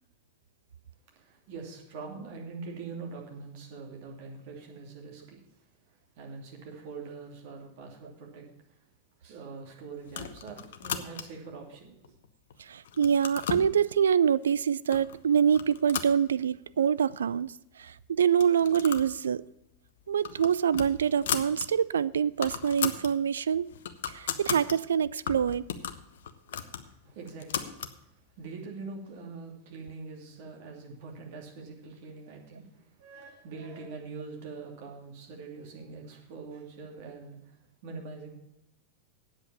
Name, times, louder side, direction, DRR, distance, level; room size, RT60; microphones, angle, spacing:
voice 1, 1.2-5.4 5.9-8.8 9.2-12.2 26.8-38.3, right 4 dB, 50° right, 2.7 m, -44 dB
sound 1, 10.1-11.5 12.0-12.5 12.8-13.7 14.4-14.5 14.9-15.2 15.5-16.8 17.1-17.2 17.4-17.5 18.3-19.1 19.4-19.6 20.0-21.7 22.0-22.1 22.3-23.1 23.5-24.8 25.3-28.0, left 8 dB, 60° left, 0.8 m, -36 dB
voice 2, 12.7-17.5 17.8-19.4 20.1-23.7 24.1-25.6, right 8 dB, 65° right, 0.3 m, -25 dB
8.7 x 7.8 x 7.2 m
figure-of-eight pair, 90°, 0 cm